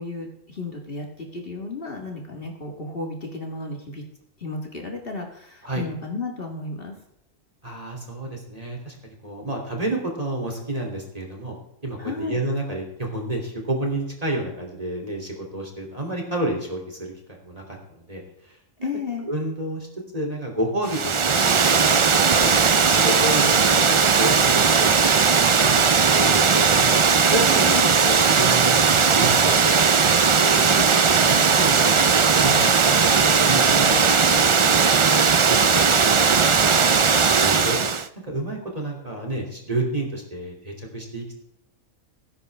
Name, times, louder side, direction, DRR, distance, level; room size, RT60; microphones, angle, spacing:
voice 1, 0.0-4.0 4.4-6.9 12.0-12.4 18.8-19.3 27.6-27.9, left 3 dB, 45° left, 1 dB, 2.0 m, -33 dB
voice 2, 7.6-8.9 9.2-11.5 11.8-18.2 18.5-18.9 19.3-19.9 20.1-25.2 25.6-26.9 27.3-27.7 28.0-29.8 30.5-34.0 34.4-35.0 35.2-35.7 37.2-37.8 38.3-41.3, right 1 dB, 25° right, 0 dB, 3.1 m, -30 dB
Water, 20.9-38.1, right 5 dB, 55° right, 0.3 m, -18 dB
18.5 x 10.0 x 3.5 m, 0.80 s
omnidirectional pair, 1.4 m